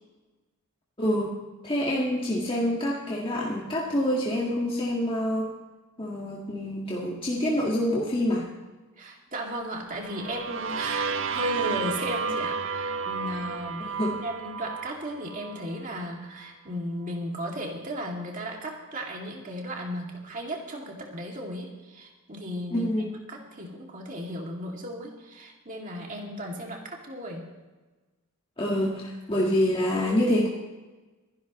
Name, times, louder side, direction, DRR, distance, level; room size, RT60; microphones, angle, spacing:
voice 1, 1.0-1.4 1.6-5.5 6.0-8.5 13.8-14.2 22.7-23.1 28.6-30.5, left 1 dB, 25° left, -4 dB, 1.7 m, -26 dB
voice 2, 9.0-13.9 14.2-22.9 23.3-27.5, equal, 35° right, 0 dB, 2.4 m, -35 dB
sound 1, 9.9-15.8, right 5 dB, 60° right, 0.6 m, -32 dB
25.5 x 11.5 x 3.1 m, 1.2 s
head